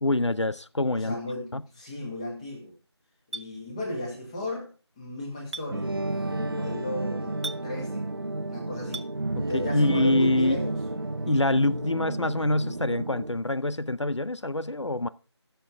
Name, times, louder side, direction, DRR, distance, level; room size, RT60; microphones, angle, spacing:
voice 1, 0.0-1.1 1.5-1.6 9.4-10.6 11.3-15.1, left 2 dB, 90° left, 0.7 m, -25 dB
voice 2, 0.9-2.7 3.3-5.9 6.2-8.1 8.5-9.1 9.5-10.8, left 1 dB, 15° left, 1.9 m, -35 dB
Chink clink, 3.3-3.5 5.5-5.7 7.4-7.6 8.9-9.1, right 2 dB, 80° right, 0.7 m, -35 dB
sound 1, 5.7-13.3, right 2 dB, 55° right, 0.9 m, -31 dB
16.0 x 6.9 x 3.6 m
figure-of-eight pair, 165°, 15 cm